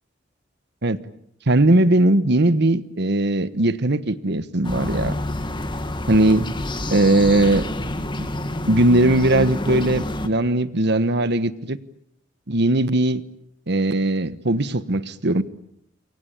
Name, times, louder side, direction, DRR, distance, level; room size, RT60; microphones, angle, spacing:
voice 1, 1.5-5.2 6.1-6.5 6.9-7.7 8.2-8.3 8.7-11.8 12.5-13.2 13.7-15.4, right 1 dB, 60° right, 14 dB, 1.3 m, -19 dB
sound 1, 4.6-10.3, left 1 dB, 25° left, 2.0 m, -28 dB
28.5 x 23.5 x 8.9 m, 0.73 s
head